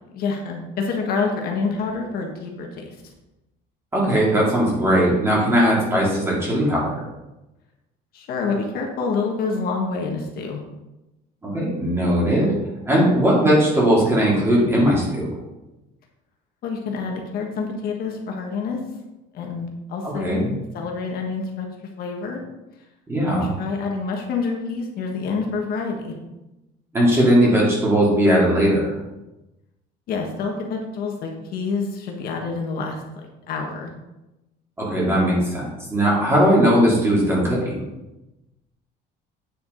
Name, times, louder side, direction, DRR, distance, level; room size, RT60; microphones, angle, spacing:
voice 1, 0.1-2.9 8.1-10.6 16.6-18.8 19.3-21.7 22.0-22.4 23.2-26.1 30.1-33.0 33.5-33.9, left 4 dB, 60° left, 1 dB, 1.5 m, -27 dB
voice 2, 3.9-7.0 11.4-12.5 12.8-15.3 20.0-20.5 23.1-23.5 26.9-28.9 34.8-37.8, equal, 15° right, -5 dB, 2.9 m, -19 dB
8.8 x 7.0 x 3.9 m, 0.98 s
cardioid pair, 160°, 18 cm